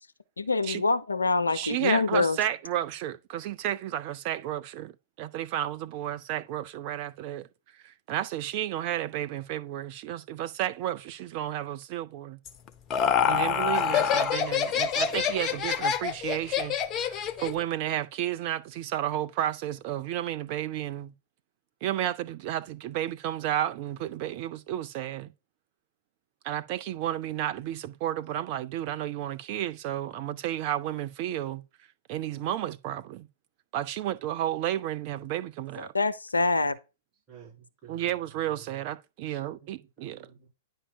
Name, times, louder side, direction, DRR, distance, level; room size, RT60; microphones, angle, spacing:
voice 1, 0.4-2.4 35.9-36.7, left 3 dB, 80° left, 0.5 m, -25 dB
voice 2, 1.5-7.5 7.8-12.4 13.3-21.1 21.8-25.3 26.4-31.6 32.1-33.3 33.7-35.9 37.9-40.3, right 12 dB, 40° right, 0.4 m, -32 dB
Laughter, 12.5-17.6, left 7 dB, 25° left, 0.6 m, -26 dB
voice 3, 37.3-38.1 38.5-38.6 39.2-40.5, right 7 dB, 20° right, 3.6 m, -52 dB
10.0 x 5.5 x 2.3 m
figure-of-eight pair, 110°, 0 cm